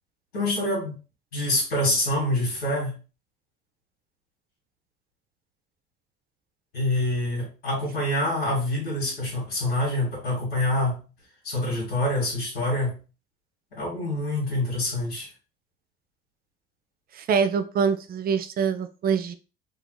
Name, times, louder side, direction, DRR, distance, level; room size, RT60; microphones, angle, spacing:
voice 1, 0.3-1.0 1.3-2.9 6.7-11.0 11.4-13.0 13.7-15.3, left 1 dB, 85° left, -9 dB, 1.7 m, -26 dB
voice 2, 17.2-19.3, right 6 dB, 30° right, 10 dB, 0.5 m, -24 dB
3.7 x 2.8 x 2.2 m, 0.34 s
hypercardioid pair, 60°, 29 cm